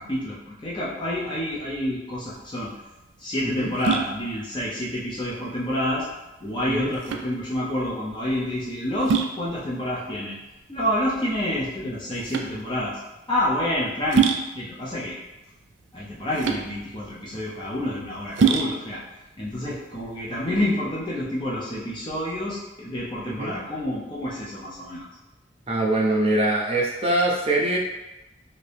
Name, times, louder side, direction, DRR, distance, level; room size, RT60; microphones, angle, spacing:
voice 1, 0.0-2.7 3.2-6.1 6.4-10.4 10.7-13.0 13.3-15.2 15.9-19.0 19.4-25.1, left 1 dB, 25° left, -7 dB, 0.6 m, -28 dB
sound 1, 2.3-20.8, right 6 dB, 90° right, 0.4 m, -29 dB
voice 2, 25.7-27.8, right 1 dB, 30° right, -3 dB, 0.5 m, -23 dB
2.8 x 2.6 x 3.3 m, 1.0 s
head